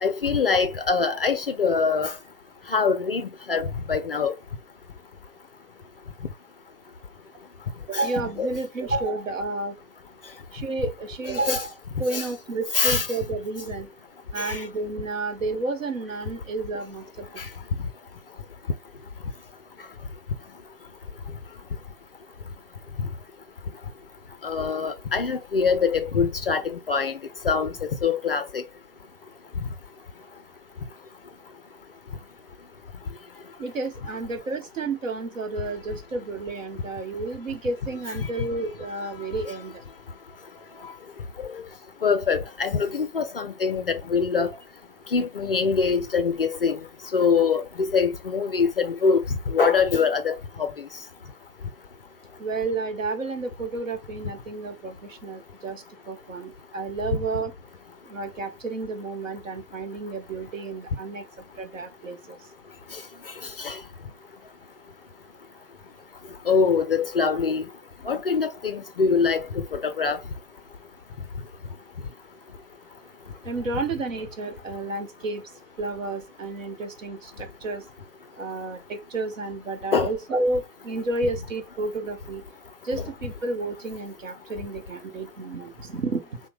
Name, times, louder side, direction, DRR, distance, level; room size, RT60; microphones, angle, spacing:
voice 1, 0.0-2.2 2.7-4.3 7.9-8.0 8.4-8.5 11.3-11.6 12.1-12.3 12.7-13.1 14.4-14.6 17.4-17.5 24.4-27.2 27.4-27.7 28.0-28.6 42.0-44.5 45.1-46.8 47.1-47.6 47.9-50.7 63.6-63.8 66.5-67.6 68.1-69.4 69.7-70.2 79.9-80.1, left 5 dB, 40° left, 0.4 m, -23 dB
voice 2, 7.9-9.8 10.5-13.9 14.3-17.5 33.6-39.8 52.4-57.5 58.0-62.5 67.2-67.3 73.4-77.9 78.3-82.5 82.8-86.4, right 3 dB, 55° right, 1.0 m, -31 dB
5.7 x 2.2 x 3.2 m
figure-of-eight pair, 120°, 46 cm